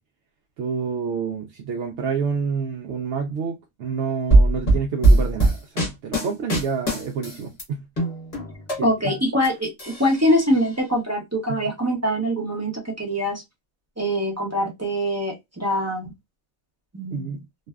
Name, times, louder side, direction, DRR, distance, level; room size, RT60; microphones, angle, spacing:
voice 1, 0.6-7.8 8.8-9.1 11.5-11.6 17.1-17.4, right 6 dB, 65° right, 0.8 m, -28 dB
sound 1, 4.3-7.6 8.0-9.5 9.8-10.7, right 2 dB, 30° left, 1.0 m, -20 dB
voice 2, 8.8-12.7 13.0-13.4 14.0-16.1 16.9-17.4, equal, 20° right, 0.5 m, -23 dB
2.6 x 2.3 x 2.2 m
omnidirectional pair, 1.5 m